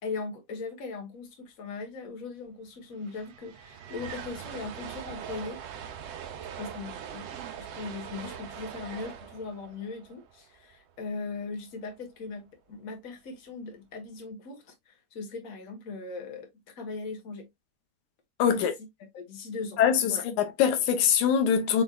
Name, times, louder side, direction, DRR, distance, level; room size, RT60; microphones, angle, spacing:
voice 1, 0.0-5.6 6.6-7.3 7.6-17.5 18.5-18.7 19.1-20.2, left 4 dB, 40° left, 1.3 m, -39 dB
sound 1, 2.5-2.6 2.8-11.0, right 8 dB, 65° right, 1.7 m, -42 dB
voice 2, 18.4-18.7 19.8-21.8, left 8 dB, 80° left, 2.3 m, -23 dB
6.3 x 3.5 x 2.4 m
omnidirectional pair, 3.5 m